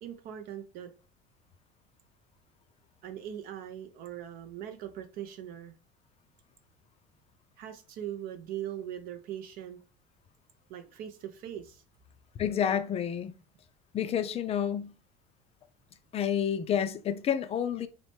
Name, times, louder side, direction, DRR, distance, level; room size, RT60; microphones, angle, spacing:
voice 1, 0.0-0.9 3.0-5.7 7.6-9.8 10.7-11.8, right 10 dB, 55° right, 0.4 m, -40 dB
voice 2, 12.4-13.3 13.9-14.9 16.1-17.9, left 8 dB, 35° left, 0.4 m, -29 dB
3.0 x 2.0 x 3.1 m
supercardioid pair, 100°, 18 cm